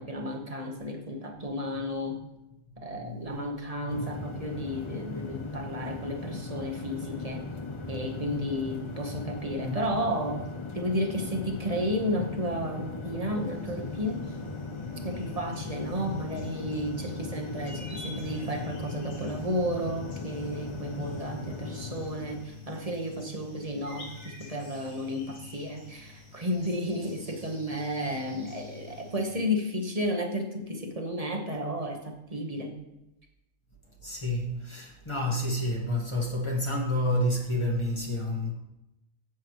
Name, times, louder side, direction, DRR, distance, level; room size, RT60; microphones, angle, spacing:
voice 1, 0.0-2.2 2.8-7.5 7.9-10.4 10.7-14.4 15.0-32.7, equal, 30° right, 1.2 m, -32 dB
voice 2, 2.9-3.3 3.9-4.0 6.0-6.3 7.7-8.0 8.4-8.5 9.6-9.8 34.0-38.5, left 1 dB, 20° left, 1.4 m, -30 dB
sound 1, 3.9-22.4, left 3 dB, 35° left, 0.4 m, -38 dB
sound 2, 13.3-29.3, left 3 dB, 65° left, 2.6 m, -47 dB
10.5 x 8.0 x 3.1 m
omnidirectional pair, 1.4 m